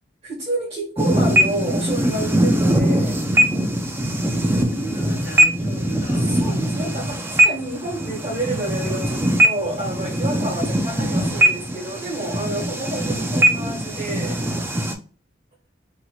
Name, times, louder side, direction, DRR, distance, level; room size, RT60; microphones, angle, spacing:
voice 1, 0.2-3.2 6.2-14.4, right 1 dB, 35° right, 1.3 m, -29 dB
sound 1, 1.0-14.9, right 1 dB, 10° right, 0.3 m, -21 dB
voice 2, 4.6-7.1, right 1 dB, 70° left, 1.1 m, -35 dB
2.9 x 2.8 x 2.3 m
head